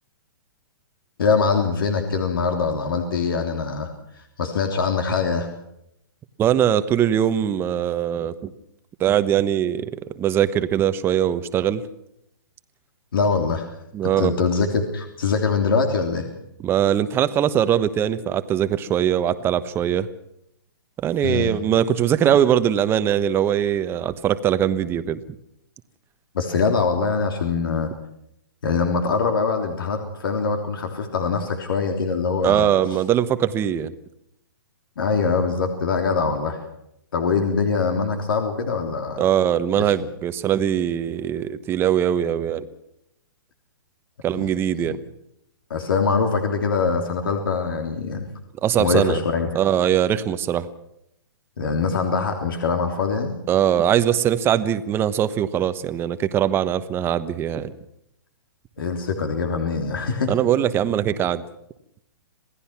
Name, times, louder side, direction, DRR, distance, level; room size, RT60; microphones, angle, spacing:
voice 1, 1.2-3.9 4.1-5.5 13.1-13.7 14.0-16.3 21.2-21.5 26.3-27.9 28.6-32.7 35.0-36.6 37.1-39.2 39.8-39.9 44.3-44.5 44.8-44.9 45.7-48.3 48.8-49.5 51.6-53.4 58.8-60.3, left 5 dB, 75° left, 4 dB, 3.3 m, -23 dB
voice 2, 6.4-8.5 9.0-9.9 10.2-11.8 13.9-14.5 16.6-20.1 21.0-25.2 32.4-33.9 39.2-42.7 44.2-45.0 48.6-49.2 49.5-50.7 53.5-57.7 60.3-61.4, right 10 dB, 20° right, 11 dB, 1.1 m, -21 dB
27.0 x 17.5 x 6.0 m, 0.79 s
hypercardioid pair, 140°, 12 cm